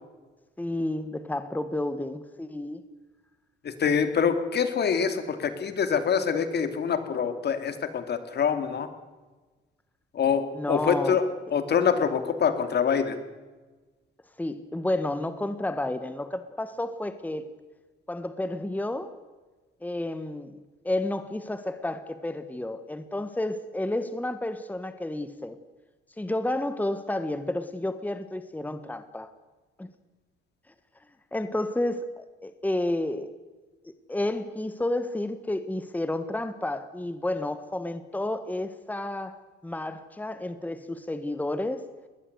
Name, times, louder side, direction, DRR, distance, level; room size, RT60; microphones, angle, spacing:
voice 1, 0.6-2.8 10.5-11.2 14.4-17.5 18.1-19.1 19.8-20.6 20.8-25.6 26.2-29.3 29.8-29.9 31.3-33.3 33.8-39.4 39.6-41.9, left 1 dB, 10° left, 11 dB, 1.5 m, -31 dB
voice 2, 3.6-8.9 10.1-13.2, left 7 dB, 55° left, 9 dB, 2.7 m, -25 dB
21.5 x 19.0 x 8.2 m, 1.3 s
cardioid pair, 90°, 20 cm